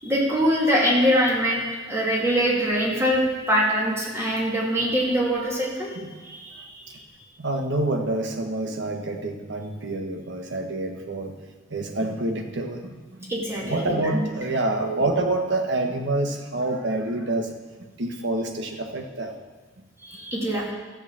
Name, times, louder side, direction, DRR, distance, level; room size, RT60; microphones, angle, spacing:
voice 1, 0.0-5.9 6.2-6.9 13.3-14.2 14.8-15.0 20.0-20.7, equal, 15° right, -4 dB, 2.6 m, -23 dB
voice 2, 7.4-11.4 11.7-13.3 13.6-17.5 18.0-19.3, right 2 dB, 65° right, 3 dB, 1.2 m, -27 dB
13.5 x 6.5 x 7.5 m, 1.3 s
head